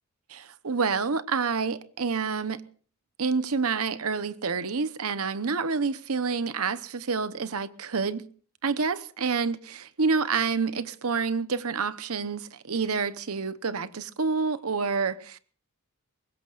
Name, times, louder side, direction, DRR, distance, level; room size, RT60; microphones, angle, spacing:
voice 1, 0.3-2.6 3.2-8.2 8.6-15.4, right 5 dB, 80° right, 0.9 m, -28 dB
23.5 x 20.5 x 2.5 m
head